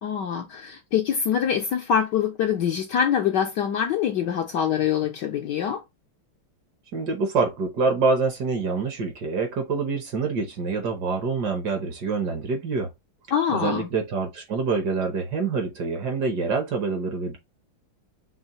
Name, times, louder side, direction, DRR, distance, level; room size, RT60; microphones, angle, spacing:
voice 1, 0.0-5.8 13.3-13.9, left 8 dB, 70° left, 1.1 m, -24 dB
voice 2, 6.9-12.9 13.5-17.4, right 4 dB, 60° right, 1.4 m, -26 dB
5.6 x 3.1 x 3.0 m
omnidirectional pair, 2.3 m